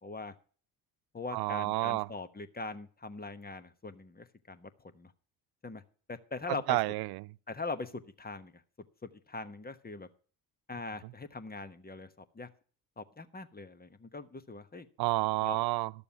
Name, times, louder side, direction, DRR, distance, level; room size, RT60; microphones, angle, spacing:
voice 1, 0.0-0.3 1.1-4.7 4.9-5.1 5.6-5.8 6.1-6.8 7.5-8.5 9.3-10.1 10.7-12.5 13.0-14.9 15.4-15.6, left 3 dB, 20° left, 1.2 m, -41 dB
voice 2, 1.3-2.1 6.7-7.3 15.0-15.9, right 19 dB, 50° right, 0.5 m, -30 dB
12.0 x 7.0 x 7.0 m
hypercardioid pair, 55°, 49 cm